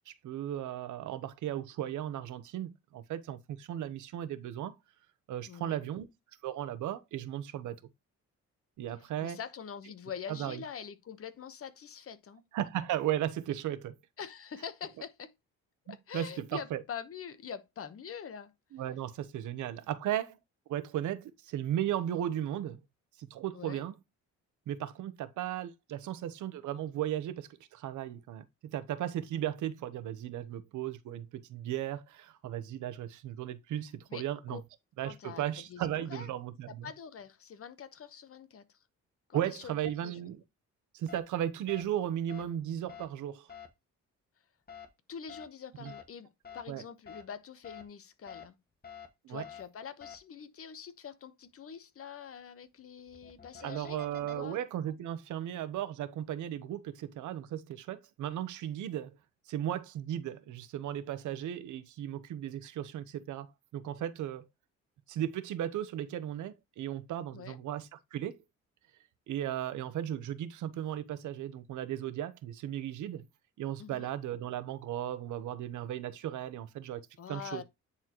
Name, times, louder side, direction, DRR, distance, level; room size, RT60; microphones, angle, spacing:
voice 1, 0.1-4.7 5.3-6.1 6.4-7.7 8.8-9.4 10.3-10.6 12.5-13.9 15.9-16.8 18.7-20.4 20.7-22.8 23.2-24.0 24.7-34.6 35.0-36.9 39.3-40.4 40.9-43.5 45.8-45.9 46.7-46.8 49.2-49.4 53.6-59.2 59.5-64.5 65.1-68.4 69.3-73.2 73.6-77.0 77.3-77.6, right 11 dB, 80° right, 1.0 m, -36 dB
voice 2, 5.5-5.8 9.2-12.4 14.2-15.3 15.9-18.5 23.5-23.8 34.1-34.6 35.0-36.3 36.7-38.6 39.3-39.7 40.0-40.2 45.1-48.6 49.3-54.6 67.3-67.6 73.8-74.1 77.2-77.6, left 7 dB, 50° left, 1.1 m, -45 dB
sound 1, 41.1-41.2 41.7-41.8 42.3-42.4 42.9-43.0 43.5-43.7 44.7-44.9 45.3-45.4 45.9-46.0 46.4-46.6 47.1-47.2 47.6-47.8 48.3-48.4 48.8-49.1 49.4-49.6 50.0-50.2 53.0-54.3, left 7 dB, 30° left, 1.6 m, -47 dB
9.7 x 4.2 x 3.0 m
cardioid pair, 90°, 30 cm